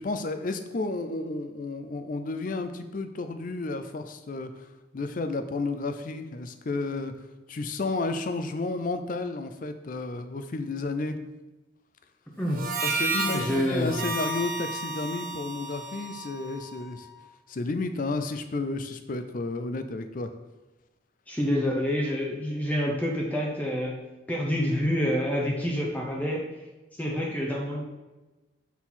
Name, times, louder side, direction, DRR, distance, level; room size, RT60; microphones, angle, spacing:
voice 1, 0.0-4.7 4.9-7.1 7.5-11.2 12.8-17.1 17.5-20.3, left 3 dB, 40° left, 9 dB, 0.4 m, -32 dB
Harmonica, 12.5-17.1, right 3 dB, 45° right, 0.7 m, -32 dB
voice 2, 13.3-14.1 21.3-23.9 24.3-26.5 27.0-27.8, equal, 10° left, -2 dB, 0.7 m, -27 dB
6.0 x 4.3 x 3.8 m, 1.1 s
head